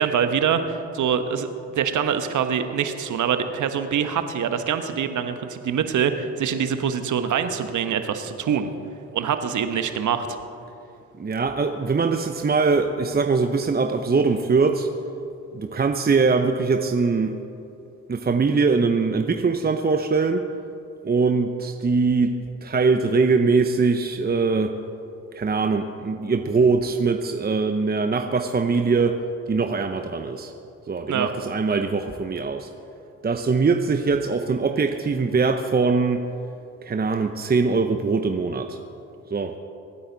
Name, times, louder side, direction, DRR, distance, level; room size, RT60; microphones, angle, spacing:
voice 1, 0.0-8.7 9.1-10.4 31.1-31.3, right 7 dB, 60° right, 8 dB, 1.2 m, -24 dB
voice 2, 11.2-14.9 15.5-17.4 18.1-20.4 21.0-24.8 25.3-29.2 29.5-30.5 30.9-32.7 33.2-36.3 36.8-38.8 39.3-39.5, right 4 dB, 30° right, 6 dB, 0.9 m, -22 dB
24.0 x 9.8 x 4.1 m, 2.8 s
supercardioid pair, 55°, 34 cm